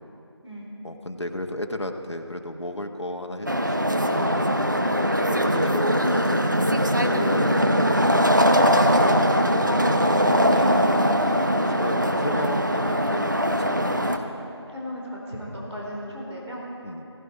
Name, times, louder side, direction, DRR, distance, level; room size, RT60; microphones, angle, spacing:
voice 1, 0.8-4.5 5.2-8.2 11.7-14.1 16.8-17.0, left 1 dB, 70° left, 4 dB, 1.3 m, -34 dB
sound 1, 3.5-14.2, equal, 40° right, 0.7 m, -21 dB
voice 2, 9.6-11.4 14.7-16.7, equal, 70° right, -4 dB, 4.4 m, -34 dB
16.5 x 16.0 x 4.8 m, 2.9 s
figure-of-eight pair, 175°, 15 cm